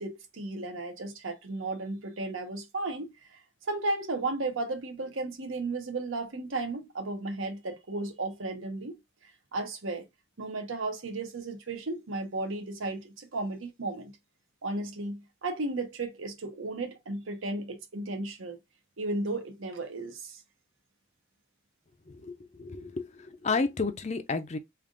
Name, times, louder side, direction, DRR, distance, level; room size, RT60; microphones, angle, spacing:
voice 1, 0.0-10.1 10.4-14.1 14.6-18.6 19.0-20.4, right 2 dB, 80° right, 0.9 m, -34 dB
voice 2, 22.1-24.6, left 4 dB, 35° left, 0.5 m, -32 dB
3.4 x 2.5 x 3.7 m
head